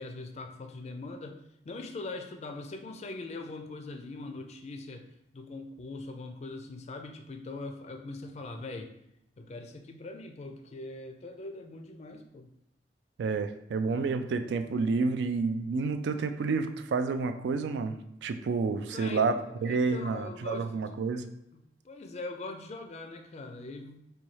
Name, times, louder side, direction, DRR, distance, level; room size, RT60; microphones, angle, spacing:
voice 1, 0.0-1.4 1.6-5.0 5.3-8.9 9.4-12.5 18.8-19.3 19.6-20.8 21.5-24.0, left 2 dB, 40° left, 5 dB, 0.4 m, -41 dB
voice 2, 13.2-17.9 18.2-21.2, right 4 dB, 70° right, 8 dB, 0.3 m, -29 dB
4.1 x 2.3 x 3.1 m, 0.80 s
head